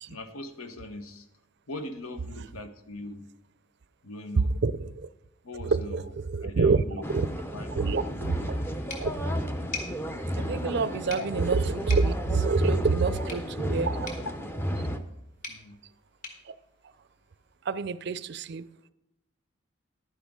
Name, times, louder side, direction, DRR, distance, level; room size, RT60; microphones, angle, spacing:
voice 1, 0.1-1.3 1.7-3.3 4.0-4.5 5.4-6.1 6.4-7.0 7.5-8.1 11.2-11.3 14.2-14.3 15.5-15.8, left 2 dB, 90° left, 1.0 m, -40 dB
voice 2, 4.6-5.1 5.7-6.8 7.1-7.3 7.7-8.4 9.0-9.1 10.4-14.1 17.7-18.6, right 4 dB, 50° right, 0.4 m, -27 dB
sound 1, 7.0-15.0, equal, 10° left, 0.5 m, -32 dB
sound 2, 8.9-17.6, left 4 dB, 40° left, 1.9 m, -45 dB
11.0 x 10.0 x 3.7 m
head